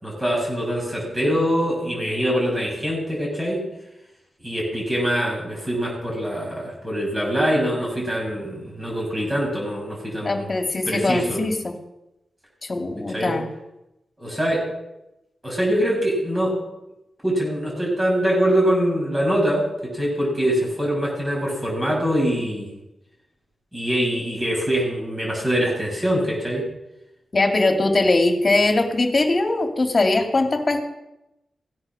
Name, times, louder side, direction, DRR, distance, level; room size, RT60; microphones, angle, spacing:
voice 1, 0.0-3.6 4.4-10.5 10.9-11.5 13.1-13.3 14.2-14.7 15.4-16.6 17.2-22.7 23.7-26.6, equal, 20° right, -3 dB, 6.9 m, -23 dB
voice 2, 10.2-11.7 12.7-13.5 27.3-30.8, left 2 dB, 35° left, 3 dB, 2.5 m, -21 dB
17.0 x 9.7 x 6.4 m, 0.92 s
wide cardioid pair, 95°, 0 cm